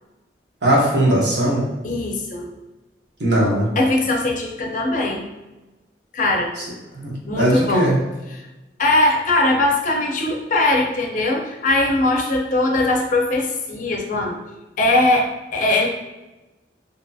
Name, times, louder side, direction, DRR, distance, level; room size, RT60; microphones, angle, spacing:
voice 1, 0.6-1.7 3.2-3.7 7.0-7.1 7.4-8.0, right 1 dB, 75° right, -4 dB, 0.9 m, -18 dB
voice 2, 1.8-2.5 3.8-5.2 6.1-6.5 7.3-7.9 8.3-8.4 8.8-14.3 14.8-15.9, left 2 dB, 45° left, 1 dB, 0.5 m, -20 dB
2.7 x 2.6 x 2.3 m, 1.1 s
head